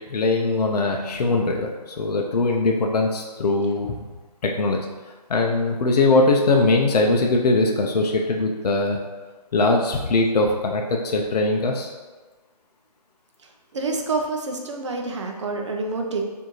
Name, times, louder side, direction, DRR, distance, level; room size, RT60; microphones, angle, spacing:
voice 1, 0.1-4.1 4.4-4.8 5.3-9.0 9.5-11.9, left 2 dB, 65° left, 1 dB, 0.5 m, -21 dB
voice 2, 13.7-16.2, right 3 dB, 45° right, 2 dB, 0.6 m, -27 dB
4.7 x 2.7 x 3.0 m, 1.3 s
hypercardioid pair, 165°, 21 cm